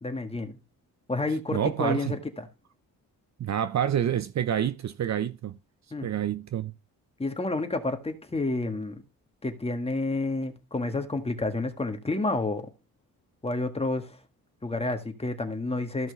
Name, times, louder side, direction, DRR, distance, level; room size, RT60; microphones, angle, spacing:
voice 1, 0.0-0.6 1.1-2.1 5.9-6.1 7.2-8.9 9.4-12.7 13.4-14.2 14.6-16.1, left 2 dB, 15° left, 1.7 m, -29 dB
voice 2, 1.5-2.2 3.4-5.6 6.0-6.7, right 10 dB, 50° right, 0.6 m, -28 dB
14.0 x 6.0 x 3.2 m
cardioid pair, 100°, 36 cm